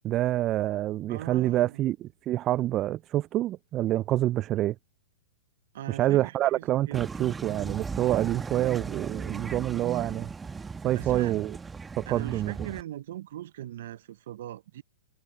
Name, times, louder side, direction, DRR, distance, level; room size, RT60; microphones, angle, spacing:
voice 1, 0.0-4.7 5.9-10.3 10.8-11.6 12.0-12.5, right 14 dB, 30° right, 0.5 m, -27 dB
voice 2, 1.1-1.8 5.7-7.0 10.9-11.3 12.1-14.8, right 13 dB, 60° right, 1.1 m, -40 dB
sound 1, 6.9-12.8, right 4 dB, 15° right, 1.5 m, -37 dB
hypercardioid pair, 110°, 0 cm